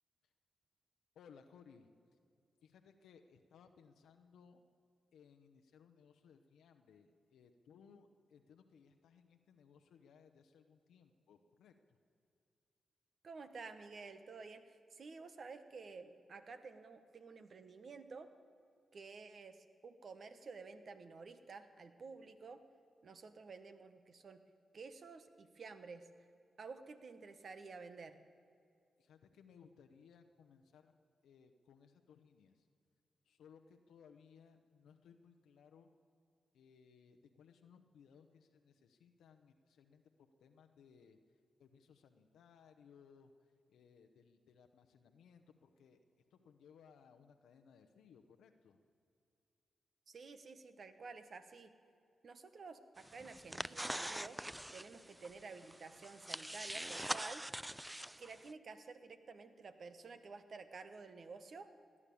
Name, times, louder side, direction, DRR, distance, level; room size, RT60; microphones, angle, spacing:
voice 1, 1.1-1.9 2.6-4.6 5.1-12.0 29.0-30.9 31.2-32.7 33.2-35.9 36.5-41.2 41.6-46.0 46.3-48.8, left 6 dB, 85° left, 6 dB, 0.8 m, -63 dB
voice 2, 13.2-18.3 18.9-22.6 23.0-24.4 24.7-26.1 26.6-28.2 50.1-51.7 52.2-54.4 54.7-57.4 58.2-61.7, right 4 dB, 60° right, 9 dB, 1.1 m, -52 dB
sound 1, 53.0-58.5, right 1 dB, 10° right, 0.4 m, -44 dB
17.5 x 9.8 x 8.5 m, 2.4 s
supercardioid pair, 45°, 0 cm